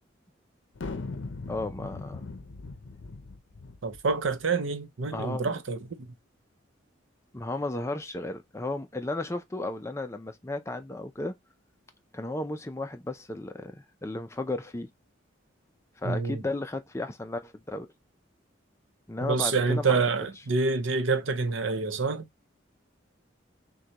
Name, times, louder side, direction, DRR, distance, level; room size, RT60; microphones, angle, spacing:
sound 1, 0.8-4.4, left 3 dB, 70° left, 0.6 m, -39 dB
voice 1, 1.5-2.3 5.1-5.6 7.3-11.3 12.1-14.9 16.0-17.9 19.1-20.0, left 2 dB, 15° left, 0.4 m, -34 dB
voice 2, 3.8-5.8 16.0-16.4 19.2-22.2, right 4 dB, 80° right, 0.7 m, -27 dB
6.3 x 2.3 x 2.8 m
head